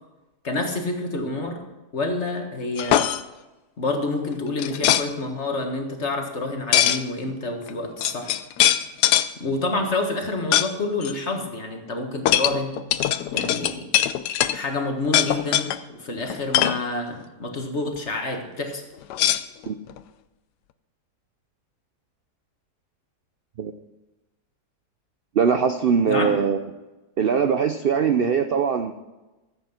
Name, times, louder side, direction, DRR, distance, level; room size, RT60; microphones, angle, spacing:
voice 1, 0.4-1.6 1.9-3.0 3.8-8.4 9.4-12.8 13.3-13.9 14.5-18.8 26.1-26.4, left 2 dB, 45° left, 3 dB, 1.8 m, -28 dB
sound 1, 2.8-3.2 4.6-5.1 6.7-7.0 7.7-7.8 8.0-9.3 10.5-10.7 11.0-11.1 12.3-14.6 15.1-15.8 16.3-16.8 19.1-20.0, left 11 dB, 85° left, 1.2 m, -21 dB
voice 2, 25.4-26.6 27.2-28.9, right 6 dB, 65° right, 7 dB, 0.5 m, -21 dB
14.5 x 8.0 x 5.8 m, 1.1 s
omnidirectional pair, 1.7 m